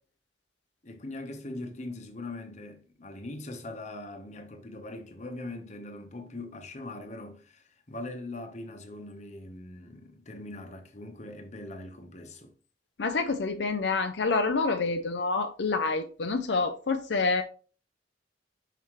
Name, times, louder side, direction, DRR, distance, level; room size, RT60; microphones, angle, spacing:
voice 1, 0.8-12.5, left 2 dB, 40° left, 1.2 m, -41 dB
voice 2, 13.0-17.4, left 4 dB, 75° left, 0.6 m, -27 dB
5.7 x 5.7 x 3.2 m
head